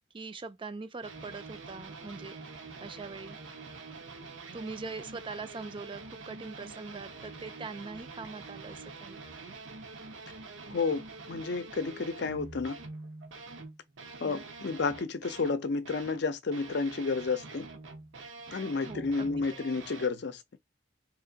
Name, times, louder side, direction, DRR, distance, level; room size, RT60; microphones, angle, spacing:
voice 1, 0.1-2.4 2.8-3.4 4.5-9.2 14.2-14.5 18.9-19.3, right 4 dB, 25° right, 0.4 m, -42 dB
sound 1, 1.0-16.2 16.5-20.1, right 3 dB, 90° right, 0.9 m, -46 dB
voice 2, 10.7-12.8 14.2-17.7 18.5-20.4, left 4 dB, 65° left, 0.6 m, -31 dB
3.0 x 2.5 x 3.9 m
head